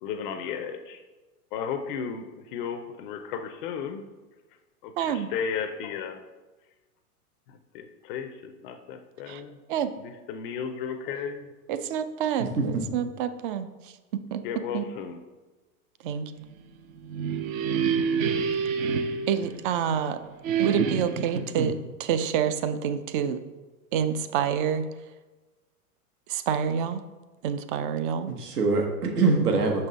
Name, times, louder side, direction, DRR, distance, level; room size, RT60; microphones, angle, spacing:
voice 1, 0.0-1.0 1.5-4.0 4.8-6.2 7.7-9.6 10.0-11.5 14.4-15.2, left 7 dB, 35° left, 7 dB, 0.5 m, -34 dB
voice 2, 5.0-5.3 9.3-9.4 9.7-9.9 11.7-14.9 16.0-16.3 19.3-20.2 20.6-21.7 22.0-23.4 23.9-24.9 26.3-27.0 27.4-28.3, right 8 dB, 35° right, 11 dB, 0.4 m, -28 dB
voice 3, 12.4-12.9 21.6-21.7 28.4-29.9, right 3 dB, 80° right, 3 dB, 1.4 m, -24 dB
sound 1, 16.9-20.0 20.4-21.4, right 6 dB, 60° right, 0.8 m, -27 dB
5.9 x 5.4 x 4.0 m, 1.2 s
hypercardioid pair, 120°, 46 cm